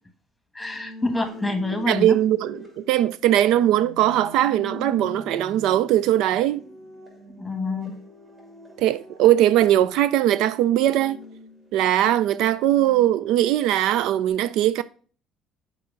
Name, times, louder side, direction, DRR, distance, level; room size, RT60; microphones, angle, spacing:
voice 1, 0.5-2.2 7.4-8.0, left 2 dB, 5° left, 1.3 m, -27 dB
sound 1, 0.6-14.3, left 1 dB, 25° right, 2.9 m, -44 dB
voice 2, 1.9-6.6 8.8-11.2 11.7-14.8, right 12 dB, 75° right, 0.3 m, -20 dB
6.7 x 4.6 x 3.8 m
cardioid pair, 125°, 0 cm